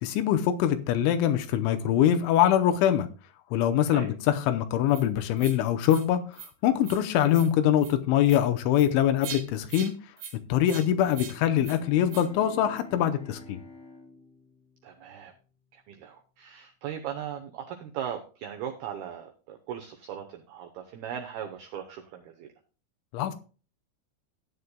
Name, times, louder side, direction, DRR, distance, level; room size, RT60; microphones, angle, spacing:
voice 1, 0.0-3.1 3.5-9.9 10.5-13.6 23.1-23.3, left 11 dB, 80° left, 3.0 m, -24 dB
sound 1, 4.9-5.0 5.4-5.6 5.9-6.1 6.3-6.5 6.8-7.0 7.3-7.5 7.8-7.9 8.3-8.4 8.7-8.9 9.2-9.4 9.7-9.9 10.2-10.3 10.7-10.9 11.1-11.3 11.6-11.8 12.1-12.3, right 8 dB, 65° right, 3.9 m, -41 dB
voice 2, 10.7-11.1 14.8-15.3 15.7-22.5, right 9 dB, 85° right, 2.2 m, -38 dB
Bowed string instrument, 11.2-15.5, left 3 dB, 40° left, 2.9 m, -49 dB
14.5 x 9.6 x 2.2 m
omnidirectional pair, 5.7 m